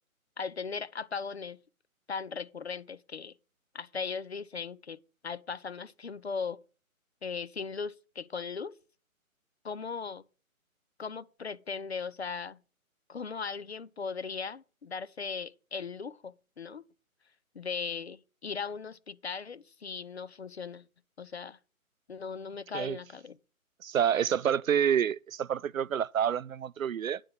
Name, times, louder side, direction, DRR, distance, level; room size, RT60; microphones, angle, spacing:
voice 1, 0.4-1.6 2.1-3.3 3.7-6.6 7.2-8.8 9.6-10.2 11.0-12.6 13.1-16.8 17.5-20.8 21.2-21.6 22.1-23.4, left 5 dB, 50° left, 0.7 m, -38 dB
voice 2, 23.8-27.2, right 8 dB, 70° right, 0.5 m, -28 dB
9.7 x 4.8 x 7.1 m
figure-of-eight pair, 145°, 43 cm